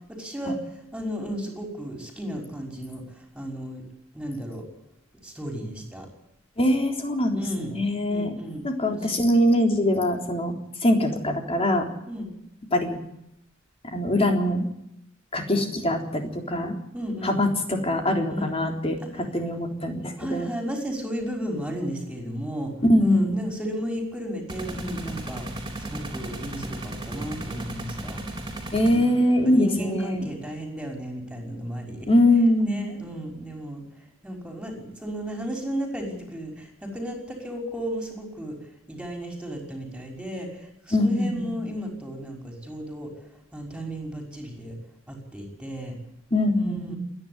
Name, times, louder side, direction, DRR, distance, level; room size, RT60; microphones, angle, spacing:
voice 1, 0.1-3.8 4.1-4.7 5.2-6.1 7.3-7.7 8.1-9.2 12.1-12.3 16.9-17.4 18.3-18.5 19.0-19.1 20.2-22.7 23.0-25.4 25.8-28.2 28.8-32.1 32.6-33.8 34.2-38.6 38.9-43.3 43.5-44.8 45.1-46.0 46.5-47.0, equal, 5° right, 2 dB, 5.9 m, -34 dB
voice 2, 6.6-7.4 7.7-8.3 8.6-10.5 10.8-11.9 12.7-13.0 13.8-14.7 15.3-16.8 17.2-20.5 22.9-23.3 28.7-30.2 32.1-32.8 40.9-41.5 46.3-46.9, left 1 dB, 30° left, 3 dB, 3.7 m, -23 dB
sound 1, 24.5-29.3, right 1 dB, 20° right, 4.1 m, -35 dB
27.5 x 11.0 x 9.8 m, 0.83 s
head